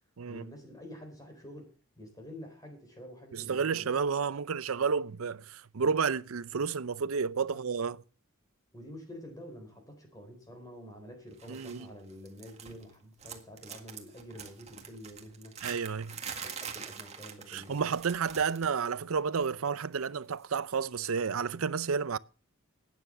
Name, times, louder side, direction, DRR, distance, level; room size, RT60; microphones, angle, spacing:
voice 1, 0.3-3.9 7.5-7.6 8.7-15.6 16.1-17.8, equal, 15° left, 3.8 m, -48 dB
voice 2, 3.3-8.0 11.5-11.9 15.6-16.2 17.5-22.2, right 5 dB, 85° right, 0.6 m, -31 dB
sound 1, 11.4-11.8 12.1-12.9 13.2-18.8 19.0-19.3 20.4-20.5, right 7 dB, 30° right, 1.9 m, -44 dB
12.5 x 9.4 x 7.7 m
head